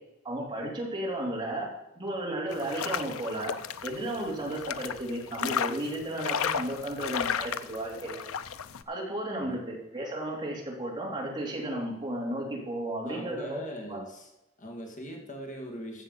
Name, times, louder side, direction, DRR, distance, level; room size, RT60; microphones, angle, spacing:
voice 1, 0.2-3.5 3.8-8.2 8.9-13.6 13.9-14.0, right 1 dB, 20° right, -2 dB, 3.4 m, -34 dB
sound 1, 2.5-8.8, left 7 dB, 85° left, 0.6 m, -34 dB
voice 2, 13.0-14.3 14.6-16.0, equal, 40° left, 2 dB, 2.0 m, -41 dB
15.0 x 7.2 x 5.4 m, 0.90 s
head